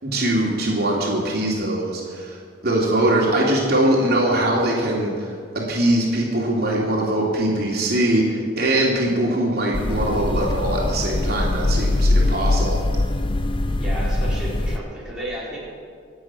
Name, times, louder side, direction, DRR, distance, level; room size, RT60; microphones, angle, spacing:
voice 1, 0.0-2.4 2.6-12.8, right 1 dB, 55° right, -4 dB, 2.9 m, -22 dB
sound 1, 9.7-14.8, left 2 dB, 25° left, 0.7 m, -22 dB
voice 2, 13.8-15.6, right 1 dB, 5° right, -8 dB, 4.8 m, -32 dB
25.5 x 8.8 x 6.1 m, 2.1 s
head